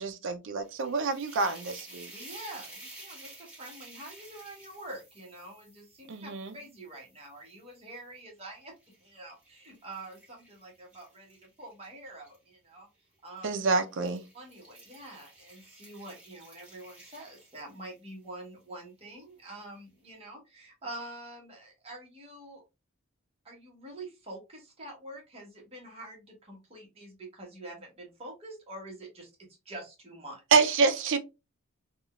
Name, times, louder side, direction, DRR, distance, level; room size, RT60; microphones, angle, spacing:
voice 1, 0.0-2.1 6.1-6.5 13.4-14.2 30.5-31.2, right 4 dB, 60° right, 0.4 m, -27 dB
sound 1, 0.6-7.8 8.4-12.4 13.3-13.5 13.9-18.1, right 1 dB, 5° right, 1.0 m, -52 dB
voice 2, 2.1-8.7 9.0-12.9 13.2-13.5 14.3-22.6 23.4-30.4, right 1 dB, 30° right, 1.1 m, -46 dB
3.6 x 2.3 x 2.3 m
head